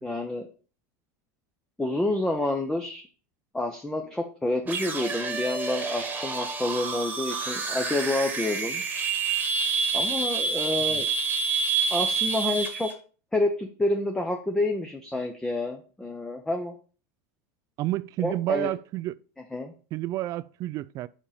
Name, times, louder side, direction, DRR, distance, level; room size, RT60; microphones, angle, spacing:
voice 1, 0.0-0.5 1.8-3.0 3.5-8.8 9.9-11.1 11.9-12.9 13.3-16.7 18.2-18.7 19.5-19.7, left 2 dB, 5° left, 0.8 m, -28 dB
sound 1, 4.6-12.9, right 5 dB, 20° right, 1.5 m, -28 dB
voice 2, 17.8-19.1 19.9-21.1, right 16 dB, 40° right, 0.4 m, -30 dB
5.5 x 5.0 x 5.1 m
supercardioid pair, 125°, 9 cm